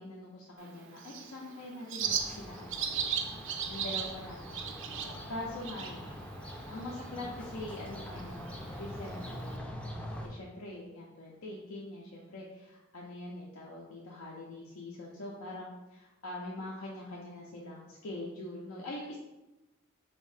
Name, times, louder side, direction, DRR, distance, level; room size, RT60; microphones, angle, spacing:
voice 1, 0.0-9.7 10.2-19.2, left 1 dB, 90° left, -4 dB, 0.6 m, -44 dB
Bird, 0.6-9.6, right 7 dB, 65° right, 0.4 m, -39 dB
sound 1, 2.0-10.3, equal, 5° left, 0.3 m, -44 dB
4.0 x 2.7 x 3.2 m, 0.99 s
head